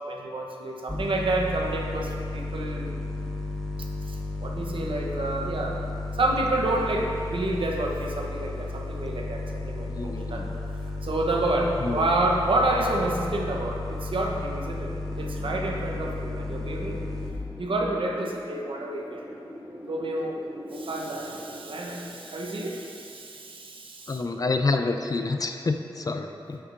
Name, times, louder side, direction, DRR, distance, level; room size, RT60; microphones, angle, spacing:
voice 1, 0.1-2.9 4.1-5.8 6.2-10.4 11.0-17.0 17.6-19.2 19.9-20.4 20.7-24.2, right 2 dB, 65° right, 0 dB, 0.8 m, -29 dB
sound 1, 0.9-17.3, left 2 dB, 5° left, 0.8 m, -33 dB
voice 2, 10.0-10.6 11.8-12.1 24.1-26.6, left 3 dB, 40° left, 6 dB, 0.4 m, -28 dB
Wind, 15.1-23.8, equal, 20° right, 1.2 m, -43 dB
8.2 x 5.7 x 2.5 m, 2.6 s
wide cardioid pair, 75°, 9 cm